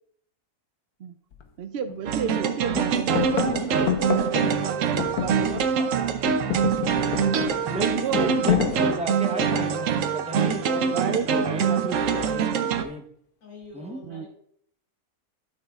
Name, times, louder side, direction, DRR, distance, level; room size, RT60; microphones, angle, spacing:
sound 1, 1.3-1.4 1.9-2.4 2.7-5.9 6.2-9.8 10.8-11.2, left 8 dB, 80° left, 1.4 m, -29 dB
voice 1, 1.6-6.3 7.7-8.5 10.9-11.5 14.1-14.2, right 7 dB, 85° right, 10 dB, 0.5 m, -32 dB
sound 2, 2.1-12.8, right 6 dB, 65° right, 0.9 m, -24 dB
voice 2, 7.6-13.0 13.7-14.0, right 1 dB, 5° right, 2 dB, 0.5 m, -34 dB
voice 3, 13.4-14.3, left 3 dB, 60° left, -4 dB, 3.0 m, -45 dB
12.5 x 6.5 x 2.4 m, 0.66 s
omnidirectional pair, 1.6 m